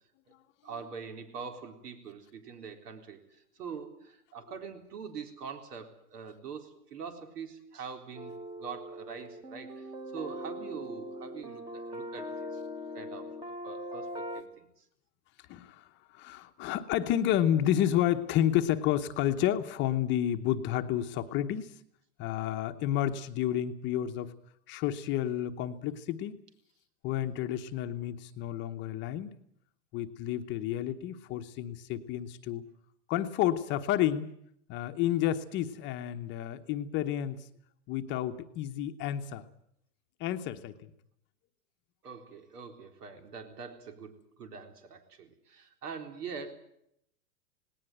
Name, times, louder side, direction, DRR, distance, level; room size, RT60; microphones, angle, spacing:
voice 1, 0.6-12.6 12.9-14.8 42.0-46.5, right 6 dB, 85° right, 6 dB, 4.1 m, -44 dB
sound 1, 8.1-14.4, equal, 10° right, 1.1 m, -41 dB
voice 2, 15.5-21.7 22.2-24.3 24.7-26.4 27.0-29.4 29.9-32.6 33.1-34.3 34.7-37.5 37.9-39.5 40.2-40.9, left 11 dB, 25° left, 7 dB, 0.9 m, -30 dB
19.0 x 18.0 x 9.1 m, 0.74 s
supercardioid pair, 150°, 46 cm